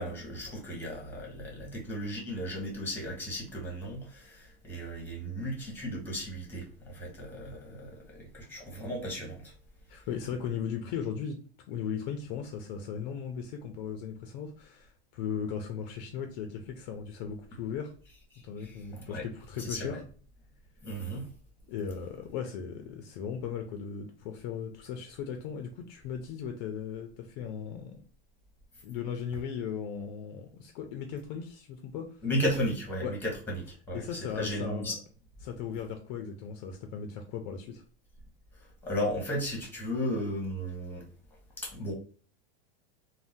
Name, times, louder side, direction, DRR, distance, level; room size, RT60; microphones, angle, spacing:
voice 1, 0.0-9.5 18.3-19.2 19.6-20.0 20.8-21.3 32.2-34.9 38.6-41.1 41.6-41.9, equal, 5° left, 1.0 m, -35 dB
voice 2, 9.9-11.4 11.7-17.9 18.4-20.0 21.7-28.0 28.8-32.2 33.0-33.1 33.9-35.0 35.4-37.8, left 7 dB, 50° left, 0.5 m, -37 dB
2.6 x 2.1 x 3.5 m
supercardioid pair, 145°, 30 cm